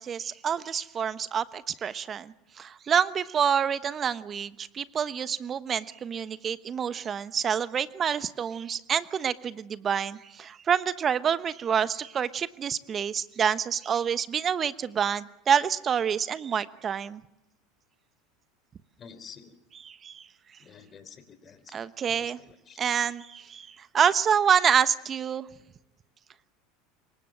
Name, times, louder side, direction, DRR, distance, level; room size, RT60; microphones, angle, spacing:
voice 1, 0.0-17.2 19.7-20.3 21.7-22.4 22.8-25.5, right 7 dB, 35° right, 14 dB, 1.1 m, -27 dB
voice 2, 19.0-19.5 20.6-21.8 22.1-22.3 22.7-22.8, left 6 dB, 35° left, 10 dB, 3.9 m, -48 dB
26.5 x 23.5 x 7.7 m, 0.85 s
hypercardioid pair, 80°, 0 cm